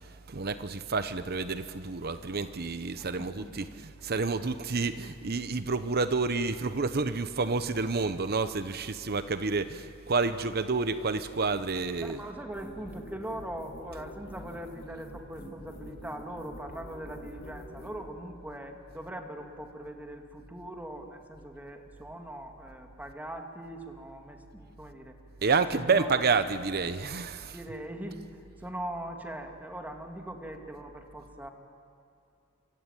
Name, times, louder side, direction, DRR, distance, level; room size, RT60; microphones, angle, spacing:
voice 1, 0.3-12.2 25.4-27.7, right 4 dB, 50° right, 11 dB, 0.9 m, -29 dB
voice 2, 3.0-3.7 12.0-25.2 25.7-26.3 27.5-28.2 28.6-31.5, right 1 dB, 10° right, 3 dB, 2.2 m, -41 dB
sound 1, 12.5-18.0, equal, 45° left, 6.3 m, -46 dB
26.0 x 24.5 x 9.0 m, 2.5 s
head